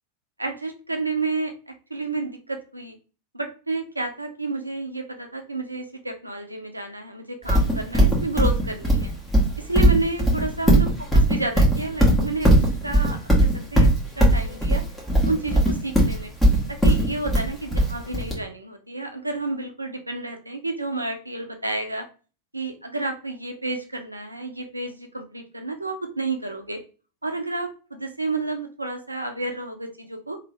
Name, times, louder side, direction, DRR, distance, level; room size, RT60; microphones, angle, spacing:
voice 1, 0.4-3.0 3.3-9.1 9.6-10.9 11.1-12.5 12.8-13.9 14.2-14.8 15.3-16.3 16.7-22.1 22.5-26.8 27.2-30.4, right 3 dB, 85° right, 5 dB, 0.6 m, -30 dB
Livestock farm animals working animals, 7.5-18.3, right 1 dB, 5° left, 1.4 m, -18 dB
3.1 x 2.5 x 3.1 m, 0.35 s
figure-of-eight pair, 90°, 0 cm